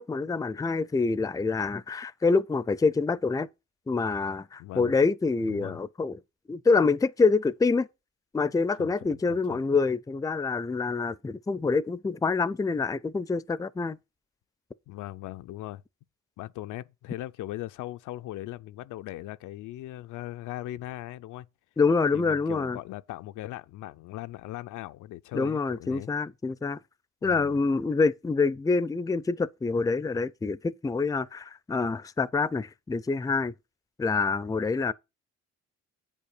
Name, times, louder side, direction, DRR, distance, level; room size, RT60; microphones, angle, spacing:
voice 1, 0.0-3.5 3.9-6.2 6.5-7.9 8.3-14.0 21.8-22.8 25.3-26.8 27.2-33.5 34.0-34.9, left 4 dB, 10° left, 0.4 m, -26 dB
voice 2, 4.6-4.9 5.5-5.8 8.8-9.6 14.9-15.8 16.4-21.5 22.1-26.1 27.2-27.6, left 15 dB, 85° left, 0.5 m, -39 dB
8.2 x 5.4 x 6.5 m
cardioid pair, 90°, 30 cm